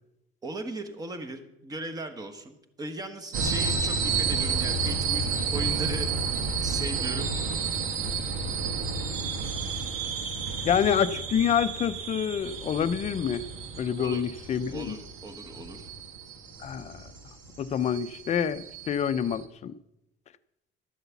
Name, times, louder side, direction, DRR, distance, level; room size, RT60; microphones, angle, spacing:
voice 1, 0.4-6.1 6.6-7.3 7.7-7.9 14.0-14.2 14.7-15.9, right 2 dB, 20° right, 1.3 m, -38 dB
sound 1, 3.3-19.4, right 5 dB, 75° right, 1.8 m, -31 dB
voice 2, 10.6-13.5 13.8-15.0 16.6-17.0 17.6-19.7, left 8 dB, 35° left, 0.6 m, -27 dB
12.5 x 8.0 x 7.0 m
cardioid pair, 130°, 20 cm